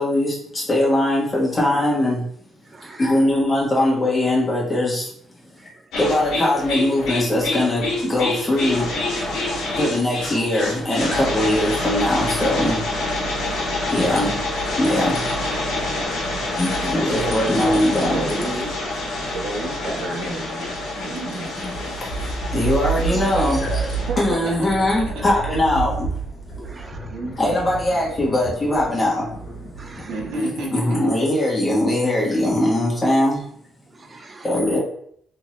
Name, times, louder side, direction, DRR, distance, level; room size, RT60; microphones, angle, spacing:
voice 1, 0.0-2.2 3.0-5.1 6.0-8.9 9.8-12.8 13.9-14.4 14.8-15.3 16.6-18.5 21.5-21.8 22.5-26.1 27.4-29.3 30.3-33.4 34.4-34.8, left 1 dB, 25° left, -4 dB, 1.4 m, -21 dB
sound 1, 5.9-24.1, left 2 dB, 75° left, 1.3 m, -27 dB
voice 2, 13.7-14.0 16.2-16.7 17.2-18.7 19.3-21.5 23.0-23.7 24.1-24.6 27.1-27.4 30.0-31.0, right 2 dB, 90° right, -3 dB, 1.1 m, -31 dB
voice 3, 15.8-16.5 19.2-19.3 26.6-27.1 29.8-30.1 34.1-34.4, right 3 dB, 30° right, 6 dB, 0.5 m, -43 dB
sound 2, 21.6-30.3, right 5 dB, 60° left, 1.5 m, -30 dB
3.5 x 2.9 x 3.1 m, 0.67 s
cardioid pair, 90°, 0 cm